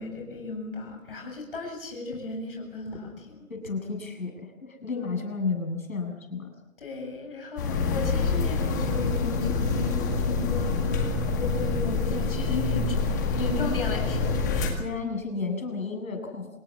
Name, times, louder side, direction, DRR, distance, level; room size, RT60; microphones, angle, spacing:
voice 1, 0.0-3.4 4.9-5.1 6.8-13.1 13.3-14.8, left 3 dB, 40° left, 1 dB, 7.7 m, -35 dB
voice 2, 3.5-6.5 14.8-16.5, left 4 dB, 80° left, 4 dB, 7.6 m, -32 dB
sound 1, 7.6-14.7, left 4 dB, 15° left, 1.8 m, -26 dB
27.0 x 18.5 x 7.5 m, 0.93 s
hypercardioid pair, 175°, 41 cm